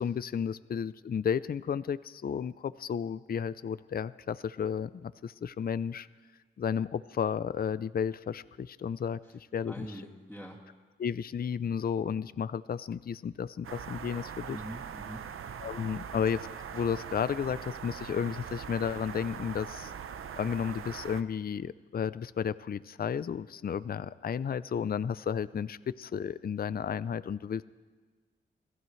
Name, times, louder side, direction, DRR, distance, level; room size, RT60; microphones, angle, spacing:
voice 1, 0.0-6.1 6.6-9.9 11.0-14.6 15.6-16.5 16.7-19.9 20.4-27.6, left 7 dB, 45° left, 16 dB, 0.5 m, -33 dB
voice 2, 9.7-10.6 14.5-15.3, equal, ahead, -5 dB, 2.5 m, -44 dB
sound 1, 13.6-21.2, right 7 dB, 75° right, 0.7 m, -42 dB
28.0 x 15.0 x 3.2 m, 1.4 s
cardioid pair, 60°, 21 cm